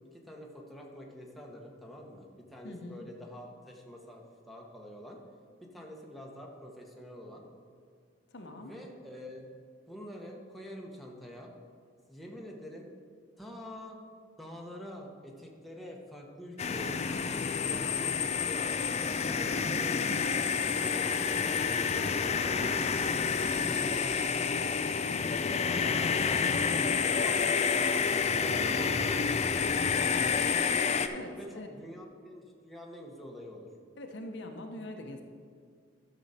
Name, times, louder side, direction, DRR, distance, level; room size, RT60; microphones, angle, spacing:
voice 1, 0.1-5.2 5.6-7.4 8.6-9.4 9.9-11.5 12.1-12.9 13.4-14.0 14.4-18.7 19.2-20.0 20.6-25.9 27.0-30.6 31.3-33.7, equal, ahead, -2 dB, 1.1 m, -47 dB
voice 2, 2.6-3.0 8.3-8.7 31.1-31.7 34.0-35.2, left 1 dB, 65° left, 4 dB, 0.9 m, -43 dB
sound 1, 16.6-31.1, left 6 dB, 35° left, 0.4 m, -29 dB
12.5 x 6.4 x 4.2 m, 2.1 s
head